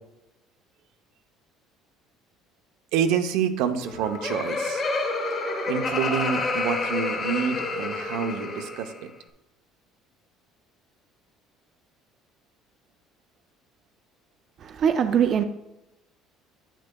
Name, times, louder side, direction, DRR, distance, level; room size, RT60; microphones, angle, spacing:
voice 1, 2.9-4.8 5.7-9.1, right 7 dB, 80° right, 0.7 m, -27 dB
Laughter, 3.7-9.0, left 3 dB, 30° left, 1.5 m, -29 dB
voice 2, 14.6-15.4, right 8 dB, 35° right, 0.4 m, -22 dB
10.0 x 9.1 x 2.3 m
cardioid pair, 175°, 0 cm